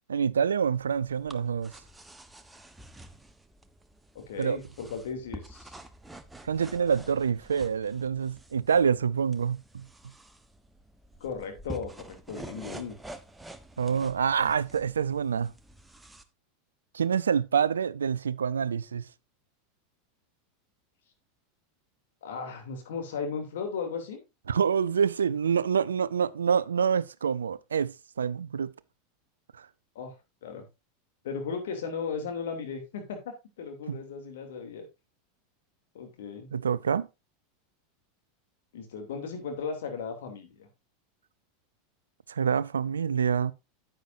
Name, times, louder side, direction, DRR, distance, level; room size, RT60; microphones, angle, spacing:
voice 1, 0.1-1.7 4.4-4.6 6.4-9.8 13.8-15.5 16.9-19.0 24.5-28.7 29.6-29.7 33.9-34.0 36.5-37.1 42.3-43.5, right 7 dB, 75° right, 0.4 m, -26 dB
sound 1, 0.7-16.2, right 1 dB, 10° right, 1.0 m, -48 dB
voice 2, 4.1-5.8 11.2-13.0 22.2-24.2 29.9-30.1 30.4-30.6 31.2-34.8 35.9-36.5 38.7-40.7, left 5 dB, 60° left, 2.8 m, -36 dB
10.0 x 9.0 x 2.6 m
figure-of-eight pair, 85°, 0 cm